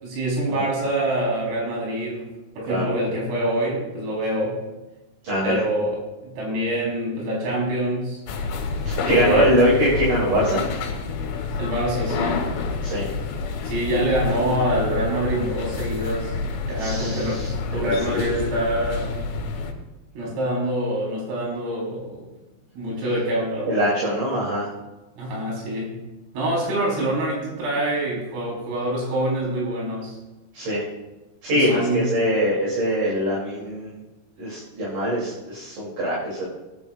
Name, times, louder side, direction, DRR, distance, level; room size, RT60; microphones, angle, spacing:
voice 1, 0.0-2.3 2.6-4.6 5.4-6.0 6.2-8.2 9.0-9.5 11.6-12.5 13.6-16.3 16.7-17.4 17.7-19.2 20.2-22.2 22.7-23.7 25.2-25.9 26.3-30.2 31.5-32.0, right 1 dB, 80° right, -4 dB, 6.5 m, -25 dB
voice 2, 5.2-5.6 8.8-10.6 12.8-13.1 16.8-18.2 20.2-20.3 23.7-24.7 30.5-30.8 31.4-33.9 34.4-36.4, equal, 45° right, -6 dB, 3.8 m, -23 dB
sound 1, 8.3-19.7, left 4 dB, 85° left, 4.1 m, -28 dB
21.0 x 10.5 x 2.4 m, 1.1 s
omnidirectional pair, 5.8 m